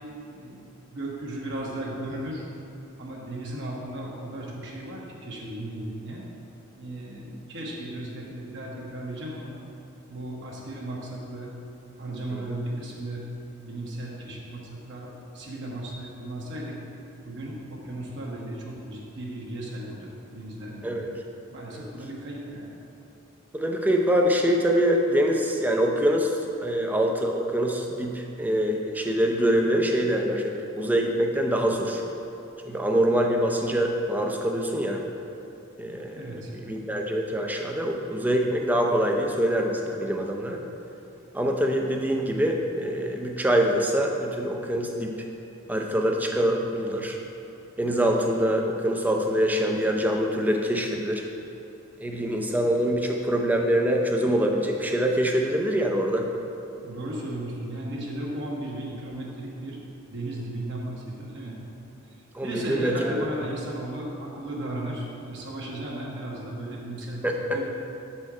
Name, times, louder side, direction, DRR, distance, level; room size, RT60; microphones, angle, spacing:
voice 1, 0.3-2.5 3.0-6.2 6.8-9.5 10.1-11.5 12.0-13.2 13.6-16.8 17.2-21.1 21.5-22.7 36.1-36.5 56.7-61.6 62.1-62.2 62.4-67.6, right 1 dB, 60° right, -3 dB, 1.0 m, -36 dB
voice 2, 23.5-26.3 26.6-32.0 32.7-35.0 35.8-40.6 41.3-45.1 45.7-47.2 47.8-51.2 52.0-56.3 62.3-63.2 67.2-67.6, equal, 10° right, 1 dB, 0.5 m, -24 dB
7.6 x 4.4 x 4.8 m, 2.8 s
head